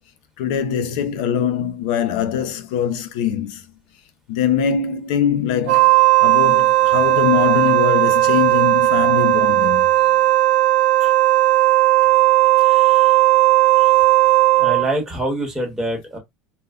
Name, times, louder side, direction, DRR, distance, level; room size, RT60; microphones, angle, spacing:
voice 1, 0.4-3.6 4.3-9.9, left 8 dB, 75° left, 0.4 m, -22 dB
Wind instrument woodwind instrument, 5.6-14.9, right 16 dB, 80° right, 0.6 m, -15 dB
voice 2, 12.6-13.2 13.7-13.9 14.6-16.2, right 1 dB, 10° right, 1.0 m, -27 dB
2.0 x 2.0 x 3.5 m
cardioid pair, 155°, 5 cm